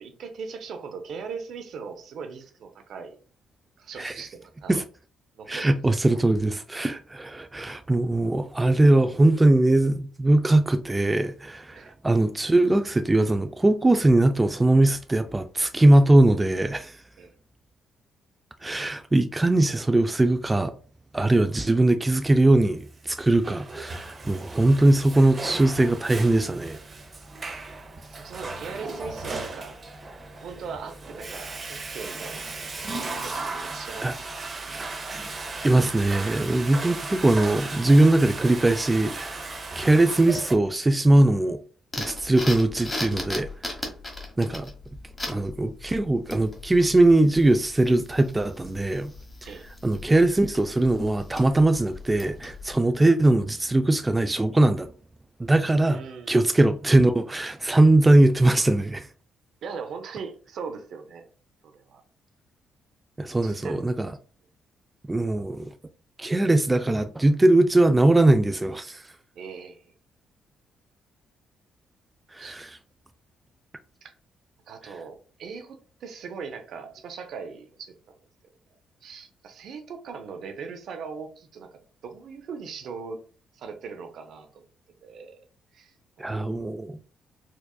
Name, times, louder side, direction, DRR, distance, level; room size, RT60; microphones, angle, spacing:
voice 1, 0.0-3.2 3.8-4.7 5.4-5.7 6.1-6.2 11.7-11.9 17.2-17.3 28.1-29.8 30.4-32.6 33.0-34.1 49.4-49.7 55.8-56.3 59.6-61.2 61.6-62.0 63.4-63.9 69.3-69.9 72.4-72.6 74.0-74.1 74.7-77.9 79.0-81.7 82.0-83.2 83.5-84.6 85.0-85.4 85.7-85.9 86.3-86.4, right 5 dB, 70° right, 0.7 m, -39 dB
voice 2, 5.5-17.0 18.6-20.7 21.1-26.8 34.0-34.1 35.1-35.3 35.6-39.5 39.8-41.6 42.0-43.5 44.4-44.7 45.3-49.1 49.8-54.9 55.4-56.0 56.3-59.1 63.2-64.1 65.1-65.7 66.2-69.0 72.3-72.7 86.2-87.0, right 2 dB, 15° right, 0.3 m, -21 dB
Water / Toilet flush, 23.1-40.5, right 3 dB, 35° right, 0.7 m, -36 dB
sound 1, 41.9-52.7, left 2 dB, 20° left, 1.3 m, -38 dB
4.6 x 2.4 x 2.3 m
cardioid pair, 90°, 0 cm